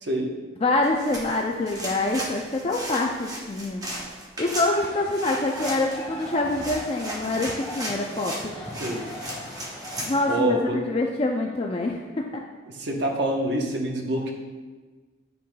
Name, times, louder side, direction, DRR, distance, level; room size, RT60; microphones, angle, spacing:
voice 1, 0.0-0.3 8.8-9.0 10.3-10.8 12.7-14.3, right 1 dB, 70° right, 0 dB, 1.0 m, -26 dB
voice 2, 0.6-3.9 4.4-8.7 10.0-12.4, left 2 dB, 30° left, 1 dB, 0.4 m, -26 dB
sound 1, 0.8-10.1, right 1 dB, 20° right, 0.9 m, -36 dB
sound 2, 4.6-10.4, equal, 10° left, 1.3 m, -40 dB
9.3 x 5.5 x 2.3 m, 1.3 s
head